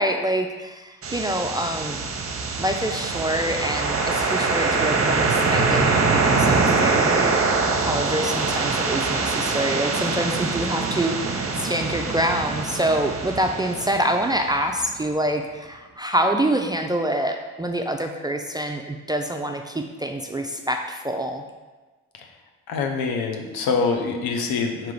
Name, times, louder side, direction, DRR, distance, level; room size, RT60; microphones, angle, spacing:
voice 1, 0.0-2.0 2.6-21.4, right 1 dB, 10° right, 3 dB, 0.3 m, -26 dB
sound 1, 1.0-14.9, right 4 dB, 40° right, 0.8 m, -24 dB
voice 2, 22.7-24.9, left 4 dB, 75° left, 3 dB, 0.7 m, -25 dB
3.7 x 2.9 x 4.7 m, 1.2 s
supercardioid pair, 50°, 37 cm